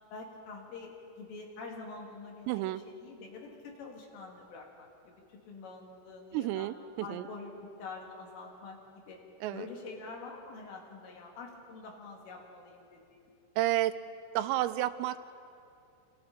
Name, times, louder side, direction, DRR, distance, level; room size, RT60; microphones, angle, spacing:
voice 1, 0.1-6.7 7.0-7.5 7.8-9.2 9.5-13.3, left 3 dB, 75° left, -1 dB, 5.4 m, -46 dB
voice 2, 2.5-2.8 6.3-7.3 9.4-9.7 13.6-13.9 14.4-15.2, right 15 dB, 90° right, 12 dB, 3.5 m, -31 dB
28.5 x 27.5 x 4.5 m, 2.7 s
omnidirectional pair, 5.8 m